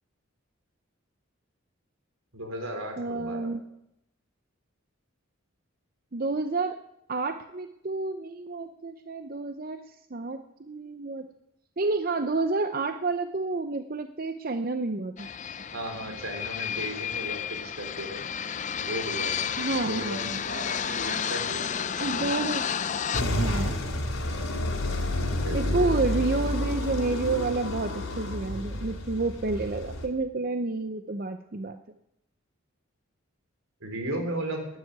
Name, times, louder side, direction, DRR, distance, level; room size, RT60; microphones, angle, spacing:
voice 1, 2.3-3.5 15.7-18.2 18.8-22.3 25.4-25.9 33.8-34.7, right 1 dB, 80° right, 4 dB, 3.8 m, -36 dB
voice 2, 3.0-3.6 6.1-6.8 7.1-11.3 11.8-15.3 19.6-20.4 22.0-22.7 23.2-23.8 25.5-31.8, right 3 dB, 45° right, 9 dB, 0.6 m, -30 dB
sound 1, 15.2-23.2, left 8 dB, 35° left, 0.5 m, -31 dB
sound 2, 23.1-30.1, left 1 dB, 85° left, 3.0 m, -30 dB
12.0 x 9.4 x 9.5 m, 0.80 s
head